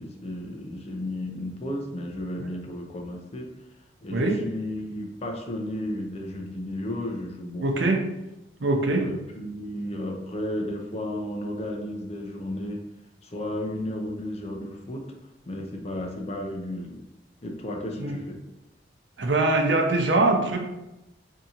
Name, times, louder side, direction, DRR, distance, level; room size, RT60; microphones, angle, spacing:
voice 1, 0.0-3.5 4.0-7.9 9.0-12.8 13.2-15.0 15.5-17.0 17.4-18.4, left 1 dB, 35° left, 1 dB, 0.5 m, -33 dB
voice 2, 7.6-8.0 8.6-9.0 18.0-18.2 19.2-20.6, right 2 dB, 75° right, 2 dB, 0.6 m, -22 dB
3.6 x 2.8 x 2.8 m, 0.95 s
head